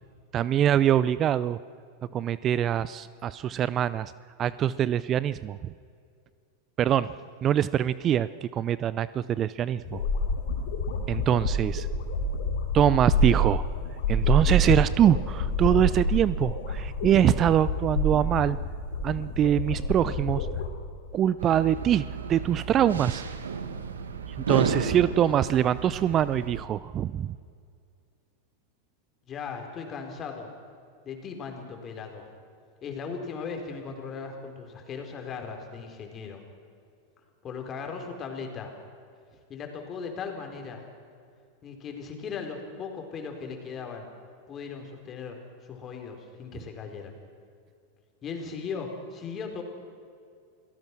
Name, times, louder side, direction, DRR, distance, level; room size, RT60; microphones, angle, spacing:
voice 1, 0.3-1.6 2.1-4.1 4.4-5.7 6.8-7.1 7.4-10.0 11.1-11.9 12.7-13.6 14.1-18.6 19.0-20.5 21.1-23.2 24.4-27.4, right 10 dB, 35° right, 17 dB, 0.5 m, -24 dB
sound 1, 9.8-20.7, equal, 65° left, 3.7 m, -27 dB
sound 2, 21.4-26.6, right 5 dB, 80° right, 1.6 m, -32 dB
voice 2, 29.3-30.5 31.0-32.3 32.8-36.4 37.4-38.7 39.5-40.8 41.6-44.1 44.5-45.4 45.6-47.1 48.2-49.6, left 5 dB, 30° left, 3 dB, 4.5 m, -37 dB
28.0 x 18.0 x 6.2 m, 2.3 s
hypercardioid pair, 95°, 0 cm